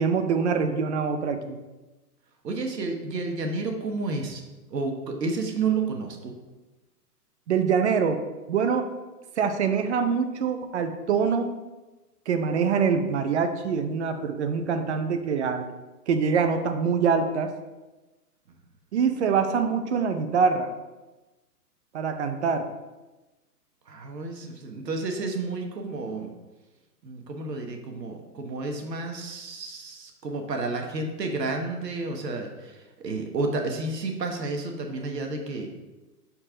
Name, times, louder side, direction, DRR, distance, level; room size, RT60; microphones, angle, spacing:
voice 1, 0.0-1.6 7.5-8.2 8.5-8.9 9.4-11.5 12.3-15.7 16.1-17.5 18.9-20.7 21.9-22.7, right 6 dB, 45° right, 8 dB, 0.7 m, -24 dB
voice 2, 2.4-4.4 4.7-6.3 23.9-26.3 27.0-35.7, right 3 dB, 90° right, 3 dB, 1.4 m, -31 dB
5.7 x 4.5 x 5.0 m, 1.1 s
hypercardioid pair, 155°, 48 cm